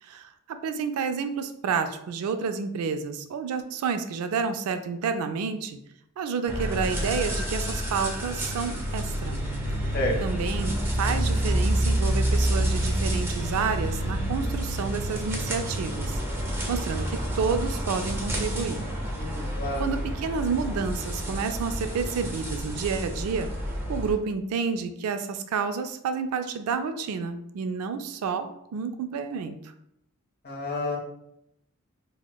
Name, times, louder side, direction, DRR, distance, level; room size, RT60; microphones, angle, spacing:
voice 1, 0.0-5.8 6.2-9.4 9.8-9.9 10.2-16.2 16.7-18.8 19.8-23.5 23.9-29.7, right 5 dB, 80° right, 9 dB, 0.3 m, -30 dB
sound 1, 6.5-24.1, right 1 dB, 10° right, 0.5 m, -28 dB
voice 2, 19.2-19.8 30.4-31.0, left 2 dB, 45° left, -1 dB, 0.7 m, -30 dB
4.1 x 2.1 x 2.2 m, 0.77 s
head